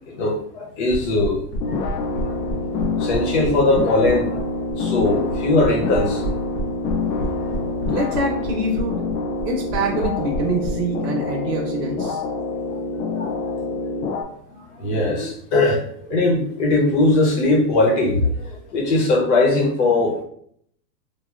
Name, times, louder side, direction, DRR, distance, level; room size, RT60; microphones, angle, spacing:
voice 1, 0.1-2.4 3.0-4.4 4.8-6.4 7.0-7.2 7.6-7.9 12.7-13.6 14.5-20.2, left 2 dB, 45° left, 0 dB, 0.9 m, -21 dB
sound 1, 0.9-10.7, equal, 25° left, 0.5 m, -29 dB
sound 2, 1.6-14.2, left 3 dB, 85° left, 0.6 m, -26 dB
voice 2, 7.9-9.0 9.4-12.2, right 1 dB, 70° right, -1 dB, 0.9 m, -25 dB
3.3 x 2.3 x 2.4 m, 0.65 s
hypercardioid pair, 130°, 50 cm